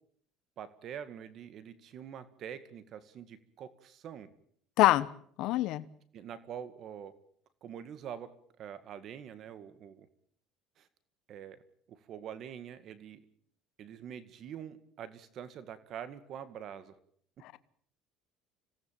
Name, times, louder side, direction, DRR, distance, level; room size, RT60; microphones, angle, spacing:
voice 1, 0.6-4.3 6.1-7.2 7.6-10.1 10.8-10.9 11.3-11.6 11.9-13.2 13.8-17.0, right 9 dB, 45° right, 14 dB, 1.9 m, -45 dB
voice 2, 5.4-5.8 17.4-17.6, left 16 dB, 65° left, 15 dB, 1.0 m, -25 dB
26.5 x 18.5 x 9.1 m, 0.63 s
cardioid pair, 140°, 0 cm